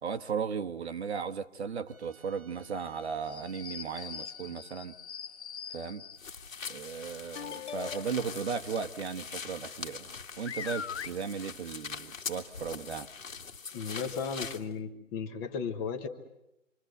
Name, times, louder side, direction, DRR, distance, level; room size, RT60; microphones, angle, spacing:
voice 1, 0.0-4.9 5.7-6.0 6.6-13.1, right 6 dB, 55° right, 1.3 m, -36 dB
Wind instrument woodwind instrument, 1.9-7.5, right 5 dB, 10° right, 1.1 m, -62 dB
sound 1, 3.3-6.3 7.3-8.3 10.1-10.2 10.4-11.1 12.3-12.4 12.9-13.0 13.8-13.9, left 8 dB, 55° left, 1.0 m, -41 dB
sound 2, 6.2-14.6, left 5 dB, 75° left, 2.1 m, -43 dB
voice 2, 13.7-16.1, left 6 dB, 15° left, 1.0 m, -35 dB
27.5 x 24.5 x 7.8 m
hypercardioid pair, 155°, 40 cm